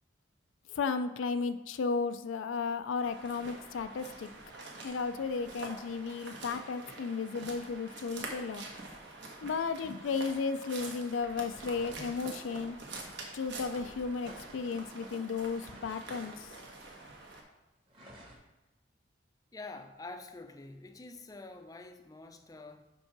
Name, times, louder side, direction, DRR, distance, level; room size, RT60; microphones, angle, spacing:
voice 1, 0.7-4.3 4.8-8.7 9.4-12.8 13.3-16.6, left 5 dB, 85° left, 10 dB, 0.4 m, -34 dB
sound 1, 3.0-17.4, right 2 dB, 65° right, 1.1 m, -46 dB
sound 2, 10.6-13.7 14.1-17.4 17.9-18.4, right 1 dB, 25° right, 1.2 m, -55 dB
voice 2, 19.5-22.8, left 2 dB, 20° left, 7 dB, 0.4 m, -47 dB
5.3 x 4.7 x 5.9 m, 1.0 s
head